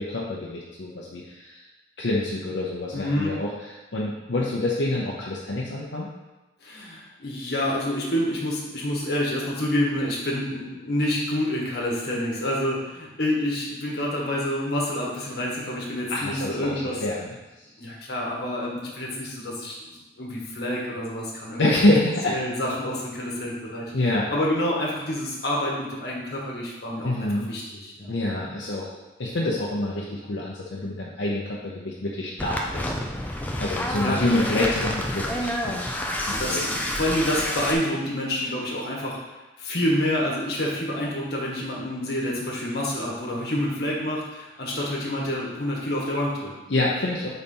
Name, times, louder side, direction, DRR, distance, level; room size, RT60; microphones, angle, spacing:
voice 1, 0.0-1.6 2.0-3.5 3.9-6.1 16.1-16.7 17.0-17.3 21.6-22.4 23.9-24.3 27.0-27.5 28.1-32.9 33.6-35.9 36.2-36.8 46.7-47.3, left 1 dB, 80° left, -4 dB, 0.7 m, -26 dB
voice 2, 2.9-3.4 4.3-4.4 6.6-17.0 17.8-19.9 20.2-21.9 22.3-28.1 33.9-34.6 36.3-39.2 39.6-46.5, left 1 dB, 55° left, -3 dB, 1.4 m, -28 dB
sound 1, 32.4-37.7, left 1 dB, 10° left, 0.4 m, -29 dB
4.2 x 4.1 x 5.4 m, 1.1 s
head